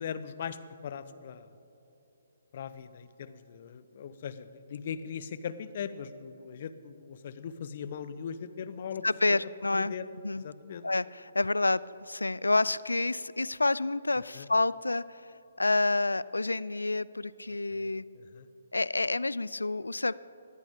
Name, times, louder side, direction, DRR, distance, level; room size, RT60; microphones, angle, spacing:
voice 1, 0.0-1.5 2.5-9.0 9.3-10.8 14.2-14.5 17.7-18.5, left 7 dB, 45° left, 14 dB, 0.7 m, -40 dB
voice 2, 9.0-9.9 10.2-10.4 10.8-15.2 15.6-18.0 18.7-20.1, left 2 dB, 85° left, 20 dB, 0.3 m, -28 dB
19.5 x 14.0 x 3.6 m, 2.9 s
figure-of-eight pair, 135°, 0 cm